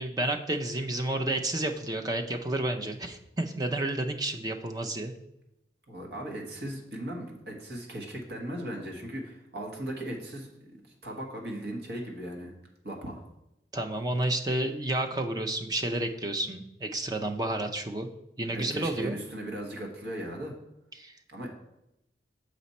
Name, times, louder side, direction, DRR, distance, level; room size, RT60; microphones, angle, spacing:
voice 1, 0.0-5.1 13.7-18.1 18.4-19.2 21.0-21.1, right 1 dB, 20° right, 5 dB, 0.5 m, -30 dB
voice 2, 5.9-10.5 11.0-12.5 12.8-13.2 18.5-20.5 21.3-21.5, right 1 dB, 65° right, 0 dB, 1.3 m, -37 dB
6.8 x 5.1 x 4.2 m, 0.87 s
head